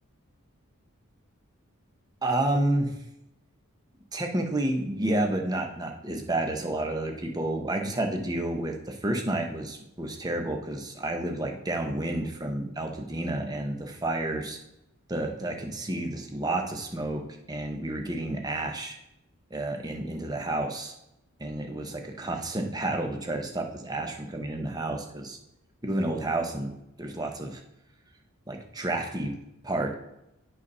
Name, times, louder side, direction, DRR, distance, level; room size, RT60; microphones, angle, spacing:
voice 1, 2.2-2.9 4.1-14.6 15.1-19.0 19.5-20.9 21.4-25.4 25.8-26.7 27.0-27.6 28.5-29.3 29.6-29.9, right 1 dB, 20° right, 3 dB, 0.8 m, -30 dB
8.1 x 4.1 x 5.4 m, 0.86 s
head